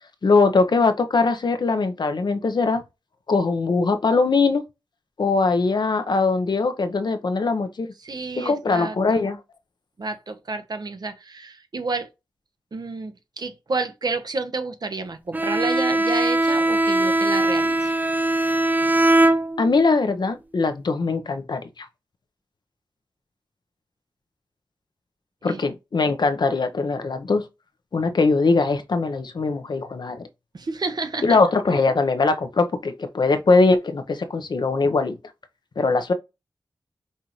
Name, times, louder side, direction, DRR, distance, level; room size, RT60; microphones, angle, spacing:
voice 1, 0.2-2.8 3.3-4.6 5.2-7.9 8.4-9.4 19.6-21.9 25.4-27.4 27.9-30.3 31.2-35.2 35.8-36.1, left 3 dB, 65° left, 0.7 m, -21 dB
voice 2, 8.0-9.2 10.0-12.1 12.7-18.0 25.5-25.7 30.5-31.4, right 3 dB, 60° right, 0.8 m, -30 dB
Bowed string instrument, 15.3-19.9, right 2 dB, 20° right, 0.3 m, -20 dB
5.4 x 2.5 x 2.9 m
wide cardioid pair, 75°, 8 cm